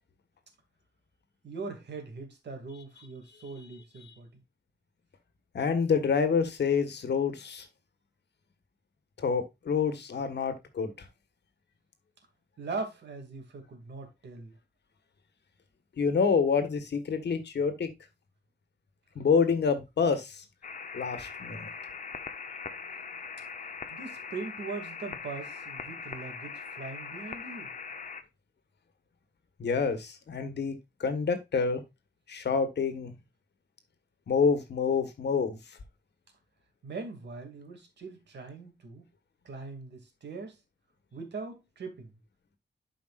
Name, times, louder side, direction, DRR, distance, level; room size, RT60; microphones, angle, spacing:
voice 1, 1.4-4.4 12.6-14.6 23.9-27.7 36.8-39.0 39.4-40.6 41.1-42.2, right 4 dB, 70° right, 2.5 m, -41 dB
voice 2, 5.5-7.6 9.2-10.9 16.0-17.9 19.1-20.4 20.9-21.7 29.6-30.7 31.0-31.8 32.3-33.2 34.3-35.6, left 5 dB, 70° left, 1.5 m, -27 dB
sound 1, 20.6-28.2, left 5 dB, 45° left, 0.8 m, -41 dB
12.0 x 5.1 x 2.5 m
wide cardioid pair, 180°, 18 cm